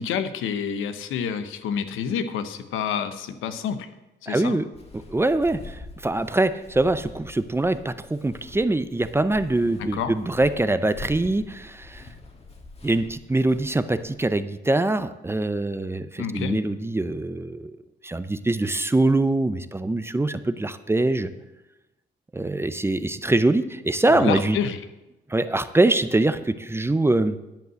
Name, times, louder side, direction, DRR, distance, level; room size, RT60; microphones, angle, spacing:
voice 1, 0.0-3.9 4.2-4.6 9.8-10.1 16.2-16.6 24.1-24.8, left 7 dB, 90° left, 10 dB, 0.9 m, -28 dB
voice 2, 4.3-4.6 5.1-12.0 12.8-17.8 18.0-21.3 22.3-24.6 25.3-27.4, right 2 dB, 10° right, 12 dB, 0.5 m, -23 dB
Walk footsteps, 4.7-14.4, left 2 dB, 30° left, 1.6 m, -45 dB
10.5 x 5.5 x 7.6 m, 1.0 s
cardioid pair, 90°, 20 cm